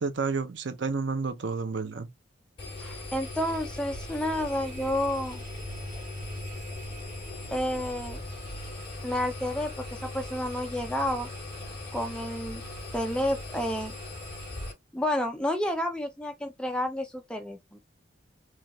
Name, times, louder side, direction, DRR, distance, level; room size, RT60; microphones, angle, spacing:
voice 1, 0.0-2.1, right 4 dB, 65° right, 0.6 m, -30 dB
Engine, 2.6-14.7, left 1 dB, 25° left, 2.4 m, -39 dB
voice 2, 2.8-5.4 7.5-8.2 9.0-11.3 11.9-12.6 12.9-13.9 14.9-17.8, left 1 dB, 5° left, 0.5 m, -30 dB
4.6 x 2.5 x 3.0 m
head